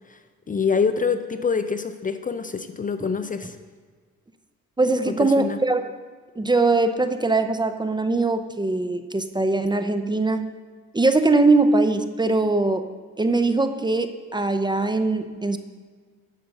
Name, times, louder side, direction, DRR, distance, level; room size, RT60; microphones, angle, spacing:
voice 1, 0.5-3.6 5.0-5.6, left 5 dB, 25° left, 9 dB, 0.5 m, -25 dB
voice 2, 4.8-5.9 6.4-10.5 10.9-12.9 13.2-15.6, right 3 dB, 15° right, 9 dB, 0.6 m, -21 dB
11.5 x 5.3 x 6.6 m, 1.5 s
cardioid pair, 90°, 30 cm